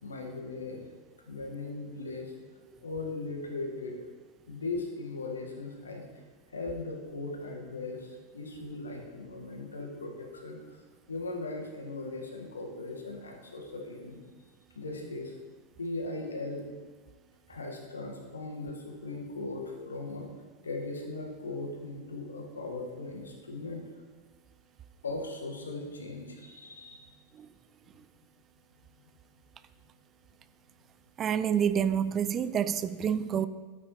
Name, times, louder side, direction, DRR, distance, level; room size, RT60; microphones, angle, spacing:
voice 1, 0.0-0.8 1.3-2.3 2.8-4.0 4.5-6.0 6.5-10.6 11.1-14.2 14.7-15.4 15.8-16.6 17.5-20.3 20.6-23.8 25.0-27.0, left 2 dB, 75° left, 1 dB, 1.7 m, -38 dB
voice 2, 31.2-33.5, right 8 dB, 25° right, 14 dB, 0.4 m, -28 dB
13.0 x 8.4 x 3.2 m, 1.4 s
figure-of-eight pair, 90°, 0 cm